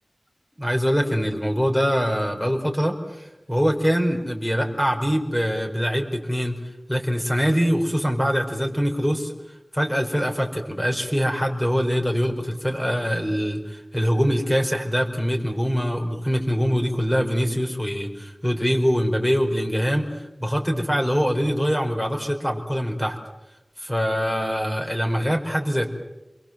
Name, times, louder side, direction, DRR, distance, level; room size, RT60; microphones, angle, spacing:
voice 1, 0.6-6.5 6.9-9.3 9.7-23.2 23.8-25.9, equal, 10° left, 3 dB, 4.8 m, -23 dB
28.5 x 22.5 x 7.6 m, 0.98 s
wide cardioid pair, 50°, 0 cm